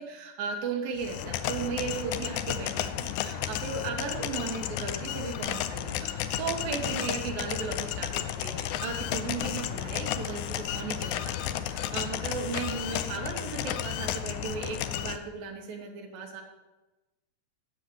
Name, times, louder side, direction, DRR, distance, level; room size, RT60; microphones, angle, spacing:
voice 1, 0.0-16.4, right 5 dB, 90° right, 1 dB, 2.8 m, -36 dB
sound 1, 1.0-15.2, left 11 dB, 85° left, 1.7 m, -33 dB
17.5 x 7.0 x 3.0 m, 1.1 s
omnidirectional pair, 4.0 m